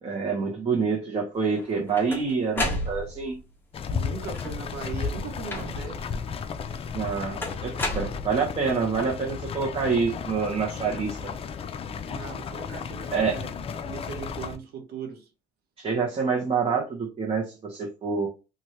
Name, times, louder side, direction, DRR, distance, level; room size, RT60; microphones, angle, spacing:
voice 1, 0.0-3.4 6.9-11.3 13.1-13.3 15.8-18.3, right 5 dB, 35° right, 0.9 m, -27 dB
sound 1, 1.6-3.4 4.2-4.8 5.5-6.0 7.4-8.7, left 1 dB, 10° left, 1.0 m, -32 dB
sound 2, 3.7-14.6, left 6 dB, 35° left, 0.4 m, -34 dB
voice 2, 3.9-6.1 12.1-13.5 13.8-15.3, right 6 dB, 70° right, 1.1 m, -38 dB
2.8 x 2.6 x 3.1 m
cardioid pair, 110°, 17 cm